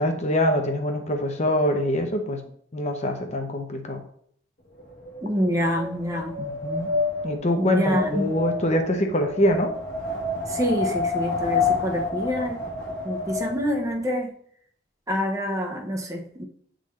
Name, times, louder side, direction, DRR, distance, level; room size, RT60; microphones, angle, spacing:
voice 1, 0.0-2.4 2.7-4.0 6.4-6.9 7.2-9.7, left 1 dB, 40° left, 4 dB, 0.7 m, -24 dB
Wind, 4.8-14.0, left 4 dB, 60° left, 1.3 m, -29 dB
voice 2, 5.2-6.3 7.6-8.3 10.5-12.6 13.0-14.3 15.1-16.4, equal, 20° right, 2 dB, 0.7 m, -26 dB
8.0 x 3.8 x 3.1 m, 0.63 s
head